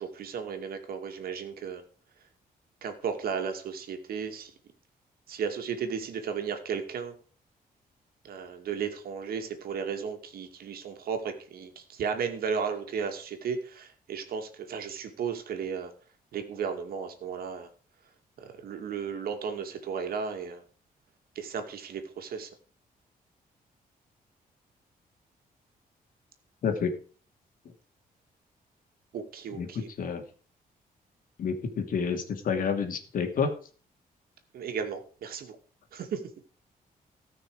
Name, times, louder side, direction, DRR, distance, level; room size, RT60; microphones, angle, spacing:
voice 1, 0.0-1.8 2.8-4.5 5.3-7.1 8.2-15.9 16.3-17.7 18.4-20.6 21.4-22.5 29.1-29.9 34.5-35.6 35.9-36.2, right 6 dB, 80° right, 5 dB, 2.4 m, -34 dB
voice 2, 29.6-30.2 31.4-33.5, left 6 dB, 65° left, 5 dB, 2.6 m, -29 dB
18.0 x 6.1 x 4.9 m, 0.42 s
wide cardioid pair, 160°, 16 cm